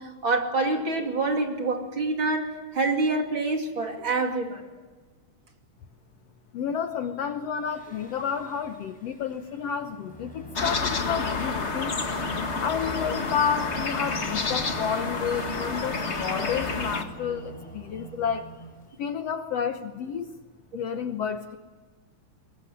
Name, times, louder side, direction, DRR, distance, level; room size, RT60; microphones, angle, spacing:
voice 1, 0.0-4.6, right 3 dB, 40° right, 3 dB, 3.3 m, -26 dB
voice 2, 6.5-12.1 12.6-18.5 19.0-20.3 20.7-21.6, left 7 dB, 65° left, 8 dB, 1.8 m, -30 dB
Singing, 7.6-19.0, right 2 dB, ahead, 7.5 m, -43 dB
sound 1, 10.5-17.0, left 4 dB, 30° left, 1.3 m, -29 dB
23.0 x 22.0 x 9.9 m, 1.4 s
omnidirectional pair, 3.5 m